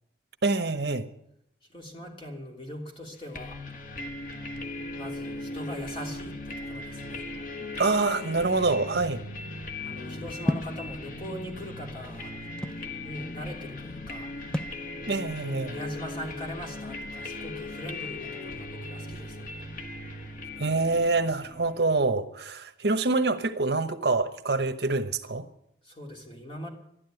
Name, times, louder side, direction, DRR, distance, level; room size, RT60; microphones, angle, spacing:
voice 1, 0.4-1.1 7.8-9.2 15.1-15.8 20.6-25.5, right 3 dB, 75° right, 1.0 m, -26 dB
voice 2, 1.7-3.6 5.0-7.3 9.8-12.3 13.0-14.3 15.4-19.5 25.8-26.7, equal, 30° left, 3.0 m, -40 dB
sound 1, 3.3-22.0, left 2 dB, 50° left, 1.3 m, -38 dB
sound 2, 10.5-10.8 11.7-12.9 14.5-14.8, left 1 dB, 5° left, 0.5 m, -30 dB
12.5 x 11.5 x 9.1 m
head